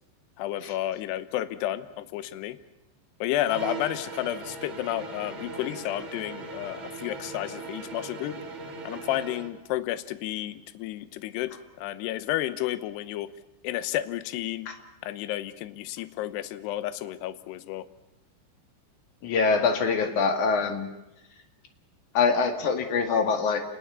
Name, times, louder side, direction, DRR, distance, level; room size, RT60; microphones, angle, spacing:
voice 1, 0.4-2.6 3.2-8.4 8.9-13.3 13.6-14.7 15.0-17.9, left 14 dB, 75° left, 13 dB, 2.5 m, -31 dB
sound 1, 3.4-9.6, right 3 dB, 45° right, 2.1 m, -39 dB
voice 2, 19.2-20.9 22.1-23.6, left 5 dB, 50° left, 5 dB, 2.7 m, -24 dB
29.0 x 20.0 x 7.0 m, 0.93 s
omnidirectional pair, 5.8 m